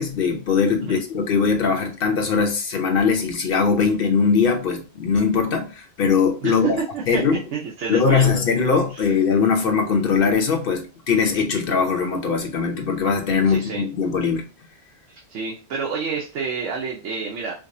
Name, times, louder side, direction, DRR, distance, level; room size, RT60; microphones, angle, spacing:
voice 1, 0.0-6.8 7.1-7.4 7.9-14.5, left 5 dB, 55° left, 0.9 m, -21 dB
voice 2, 6.4-7.2 7.5-8.6 8.9-9.2 13.4-13.9 15.1-17.5, right 5 dB, 80° right, 1.1 m, -29 dB
4.8 x 2.0 x 2.6 m
omnidirectional pair, 1.2 m